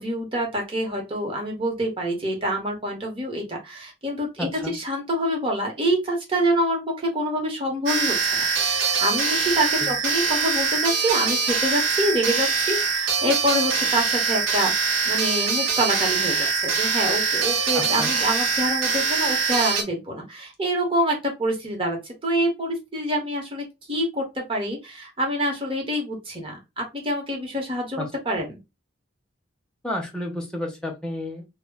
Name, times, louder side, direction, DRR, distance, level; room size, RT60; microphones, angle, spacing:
voice 1, 0.0-28.6, equal, 30° right, 0 dB, 0.9 m, -26 dB
voice 2, 4.4-4.7 9.8-9.9 17.7-18.1 28.0-28.1 29.8-31.5, left 1 dB, 5° left, 1 dB, 0.6 m, -31 dB
sound 1, 7.9-19.8, right 5 dB, 85° right, 0.8 m, -23 dB
2.3 x 2.1 x 3.5 m, 0.24 s
head